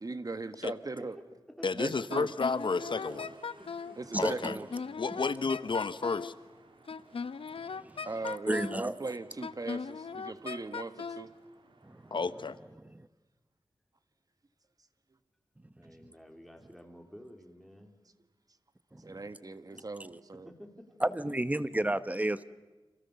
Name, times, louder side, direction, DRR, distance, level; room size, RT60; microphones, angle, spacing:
voice 1, 0.0-1.2 1.7-2.3 4.0-4.7 8.1-11.3 19.0-20.5, right 3 dB, 40° right, 1.6 m, -39 dB
voice 2, 1.0-1.7 3.6-5.0 7.7-7.8 15.8-18.0 19.7-19.9 20.3-21.3, equal, ahead, 4.0 m, -52 dB
voice 3, 1.6-3.3 4.2-4.6 5.0-6.3 12.1-12.6, left 4 dB, 60° left, 1.0 m, -31 dB
Wind instrument woodwind instrument, 2.1-4.0 4.4-6.3 6.9-8.8 9.4-11.3, left 5 dB, 85° left, 0.9 m, -39 dB
sound 1, 2.5-12.5, right 3 dB, 65° right, 3.1 m, -57 dB
voice 4, 4.1-4.5 7.9-8.0 8.5-8.9 11.8-12.2 12.9-13.1 18.9-19.2 21.0-22.4, right 1 dB, 15° right, 1.0 m, -31 dB
29.5 x 27.0 x 7.0 m
wide cardioid pair, 90°, 9 cm